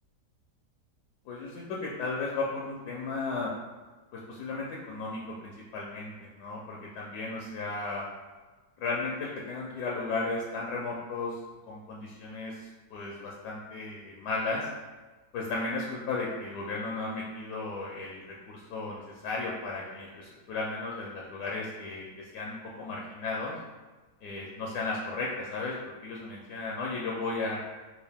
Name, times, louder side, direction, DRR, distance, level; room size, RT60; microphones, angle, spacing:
voice 1, 1.3-3.5 4.1-8.0 8.8-11.4 11.7-14.7 15.3-22.1 22.3-23.6 24.2-25.8 26.0-27.6, left 3 dB, 75° left, -3 dB, 1.1 m, -35 dB
3.7 x 2.5 x 3.4 m, 1.3 s
omnidirectional pair, 1.9 m